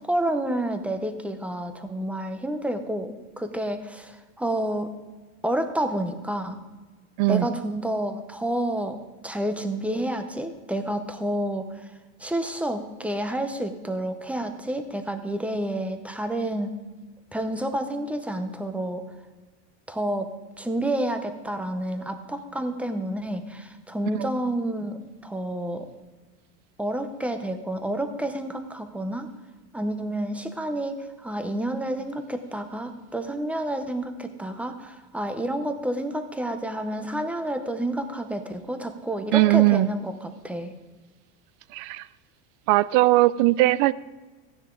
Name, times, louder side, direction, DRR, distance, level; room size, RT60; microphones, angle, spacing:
voice 1, 0.0-4.9 5.4-6.6 7.3-9.0 9.2-11.9 12.2-16.7 17.3-19.1 19.9-20.3 20.6-25.9 26.8-29.3 29.7-40.7, right 1 dB, 5° right, 7 dB, 0.7 m, -29 dB
voice 2, 39.3-39.9 41.7-42.1 42.7-43.9, right 18 dB, 45° right, 18 dB, 0.4 m, -19 dB
14.5 x 9.9 x 3.8 m, 1.3 s
supercardioid pair, 135°, 45 cm